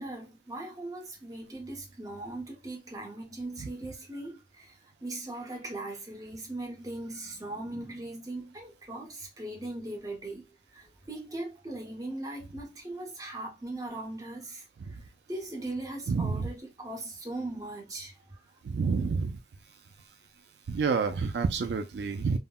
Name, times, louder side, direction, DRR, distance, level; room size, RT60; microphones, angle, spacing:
voice 1, 0.0-18.4, right 2 dB, 20° right, 0.9 m, -39 dB
voice 2, 16.1-16.5 18.6-19.4 20.7-22.4, right 5 dB, 70° right, 0.3 m, -29 dB
3.6 x 2.1 x 2.2 m
head